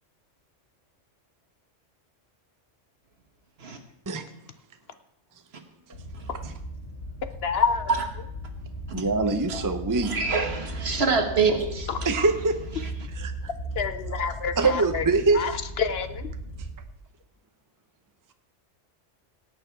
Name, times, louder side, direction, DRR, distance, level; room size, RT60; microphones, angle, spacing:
sound 1, 5.9-16.8, right 1 dB, 85° left, 2.4 m, -37 dB
voice 1, 7.4-7.9 11.9-12.0 13.8-15.1 15.3-16.3, left 6 dB, 60° left, 0.8 m, -28 dB
voice 2, 8.9-10.1 12.0-12.6 13.2-13.3 14.6-15.4, right 3 dB, 20° right, 0.7 m, -23 dB
voice 3, 10.0-12.3, right 4 dB, 60° right, 1.6 m, -26 dB
17.0 x 8.9 x 4.6 m
omnidirectional pair, 1.2 m